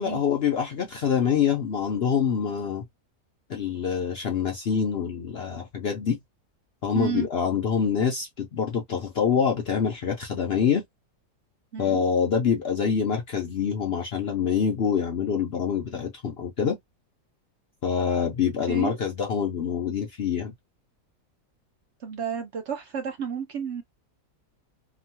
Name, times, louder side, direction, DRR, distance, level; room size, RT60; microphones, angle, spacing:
voice 1, 0.0-2.8 3.5-6.2 6.8-10.8 11.8-16.8 17.8-20.5, left 7 dB, 60° left, 0.7 m, -25 dB
voice 2, 6.9-7.3 11.7-12.0 18.7-19.0 22.0-23.8, right 7 dB, 60° right, 0.7 m, -31 dB
3.0 x 2.2 x 2.7 m
omnidirectional pair, 1.6 m